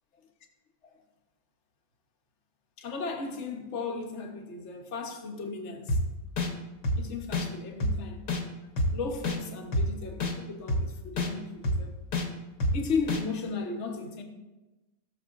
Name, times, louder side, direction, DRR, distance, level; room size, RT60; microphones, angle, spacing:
voice 1, 2.8-6.0 6.9-8.2 8.9-11.9 12.7-14.2, left 4 dB, 40° left, 1.2 m, -35 dB
sound 1, 5.9-6.0 6.4-6.5 6.8-7.0 7.3-7.5 7.8-7.9 8.3-8.4 8.8-8.9 9.2-9.4 9.7-9.9 10.2-10.3 10.7-10.8 11.2-11.3 11.6-11.8 12.1-12.3 12.6-12.7 13.1-13.2, left 1 dB, 60° left, 1.6 m, -26 dB
17.0 x 6.5 x 2.6 m
omnidirectional pair, 2.1 m